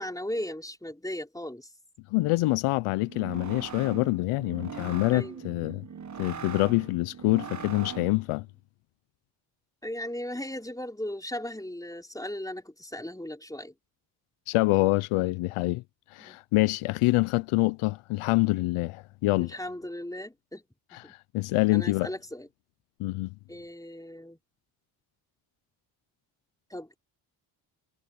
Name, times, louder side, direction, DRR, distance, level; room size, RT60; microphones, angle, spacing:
voice 1, 0.0-1.7 5.1-5.5 9.8-13.7 16.2-16.4 19.4-20.6 21.0-21.1 21.7-22.5 23.5-24.4 26.7-27.0, left 1 dB, 5° left, 4.9 m, -37 dB
voice 2, 2.1-5.8 6.2-8.5 14.5-15.8 16.1-19.6 20.9-22.1 23.0-23.3, left 21 dB, 80° left, 0.8 m, -26 dB
sound 1, 3.0-8.3, right 7 dB, 35° right, 1.3 m, -41 dB
supercardioid pair, 60°, 50 cm